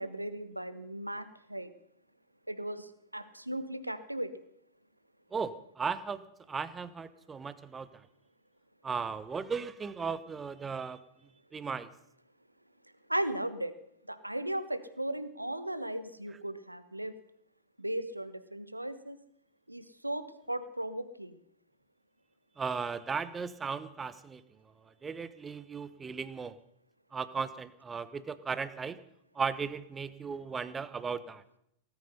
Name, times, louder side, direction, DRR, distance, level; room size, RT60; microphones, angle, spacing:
voice 1, 0.0-1.7 2.5-4.3 13.1-13.7 14.1-17.1 17.8-19.2 19.7-21.4, right 1 dB, 85° right, 13 dB, 1.2 m, -36 dB
voice 2, 5.3-7.9 8.8-11.0 11.5-11.9 22.6-24.4 24.9-26.6 27.1-29.0 29.3-31.4, right 5 dB, 15° right, 15 dB, 1.1 m, -36 dB
18.0 x 14.5 x 5.5 m, 0.73 s
figure-of-eight pair, 90°, 0 cm